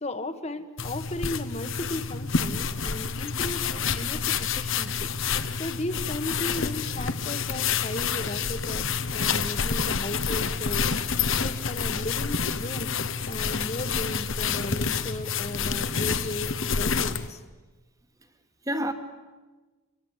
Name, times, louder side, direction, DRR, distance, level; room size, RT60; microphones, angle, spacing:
voice 1, 0.0-10.9 11.4-12.9 13.3-17.4, left 1 dB, 30° left, 10 dB, 1.4 m, -36 dB
sound 1, 0.8-17.3, left 6 dB, 60° left, 1.1 m, -28 dB
voice 2, 13.2-13.5 18.6-18.9, right 1 dB, 15° right, 8 dB, 1.5 m, -32 dB
25.5 x 22.5 x 8.2 m, 1.3 s
head